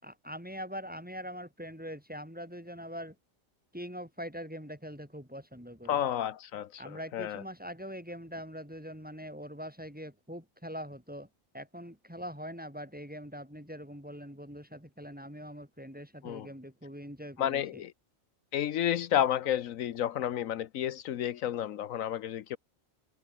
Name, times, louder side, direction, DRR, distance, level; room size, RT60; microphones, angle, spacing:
voice 1, 0.0-3.2 3.7-6.0 6.8-11.3 11.5-17.8, equal, 5° right, 4.9 m, -43 dB
voice 2, 5.9-7.4 16.2-16.5 17.4-17.9 18.5-22.6, left 10 dB, 80° left, 1.2 m, -31 dB
omnidirectional pair, 1.4 m